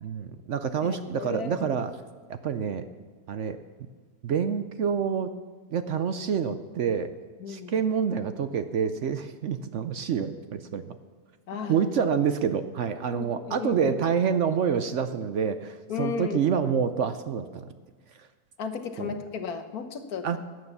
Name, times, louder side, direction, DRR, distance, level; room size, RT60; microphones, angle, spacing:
voice 1, 0.0-1.9 2.3-2.8 3.3-3.6 4.2-5.3 5.7-7.1 7.5-11.0 11.7-17.7 19.0-19.1 20.2-20.4, right 7 dB, 60° right, 11 dB, 0.9 m, -27 dB
voice 2, 0.8-1.7 7.4-7.7 11.5-11.9 13.1-13.9 15.9-16.4 18.6-20.4, left 6 dB, 75° left, 8 dB, 1.5 m, -34 dB
16.0 x 9.6 x 6.8 m, 1.4 s
omnidirectional pair, 1.6 m